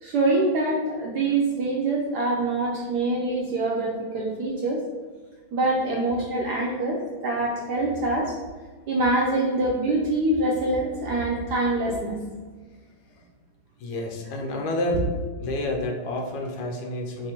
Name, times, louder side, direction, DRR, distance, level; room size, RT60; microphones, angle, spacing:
voice 1, 0.0-4.8 5.5-8.3 8.9-12.1, right 2 dB, 75° right, -2 dB, 0.9 m, -25 dB
voice 2, 13.8-15.0 15.4-17.3, left 1 dB, 75° left, 2 dB, 1.4 m, -29 dB
3.3 x 2.5 x 4.2 m, 1.4 s
omnidirectional pair, 2.2 m